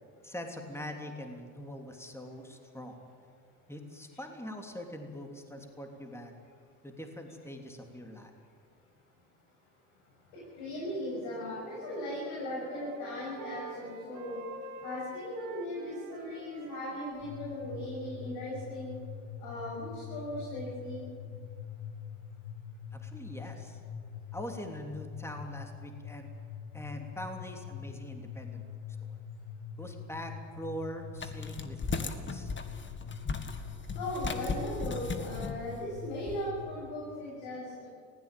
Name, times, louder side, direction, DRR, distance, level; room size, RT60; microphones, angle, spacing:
voice 1, 0.2-3.0 3.7-6.3 6.8-8.3 22.9-23.8 24.3-26.3 26.7-28.6 29.0-29.2 29.8-32.5, equal, 5° left, 3 dB, 3.1 m, -43 dB
voice 2, 10.3-14.4 14.8-19.0 19.4-21.1 34.0-37.9, left 1 dB, 75° left, -5 dB, 7.5 m, -38 dB
Wind instrument woodwind instrument, 11.4-17.8, right 3 dB, 60° right, 3.6 m, -47 dB
sound 1, 17.2-36.8, left 7 dB, 45° left, 7.3 m, -44 dB
sound 2, 31.2-36.5, left 4 dB, 30° left, 1.9 m, -37 dB
19.5 x 16.5 x 9.2 m, 2.1 s
supercardioid pair, 80°, 38 cm